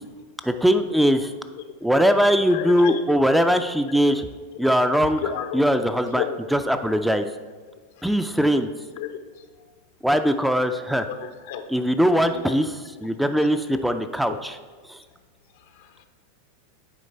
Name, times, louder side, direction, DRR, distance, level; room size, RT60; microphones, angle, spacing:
voice 1, 0.4-1.3 1.8-4.3 4.6-5.2 5.5-6.2 6.5-7.3 8.0-8.7 10.0-11.1 11.7-14.6 14.9-15.0, equal, ahead, 8 dB, 0.3 m, -21 dB
voice 2, 2.5-3.0 5.2-5.6 6.1-6.4 9.0-9.1 11.1-11.6 12.3-12.4 15.8-16.0, left 8 dB, 70° left, 7 dB, 0.7 m, -30 dB
8.5 x 3.2 x 4.2 m, 1.5 s
hypercardioid pair, 115°, 0 cm